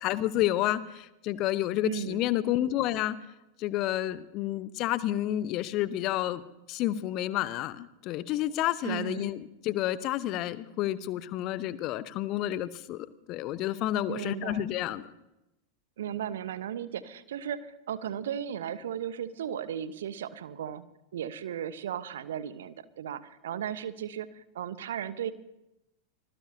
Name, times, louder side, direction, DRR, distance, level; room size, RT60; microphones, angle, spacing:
voice 1, 0.0-3.2 3.6-6.4 6.7-15.0, left 14 dB, 40° left, 16 dB, 0.9 m, -30 dB
voice 2, 1.8-2.2 8.8-9.3 14.1-14.6 16.0-20.8 21.1-25.3, right 9 dB, 60° right, 14 dB, 1.1 m, -36 dB
25.0 x 20.0 x 2.8 m, 0.94 s
figure-of-eight pair, 90°, 0 cm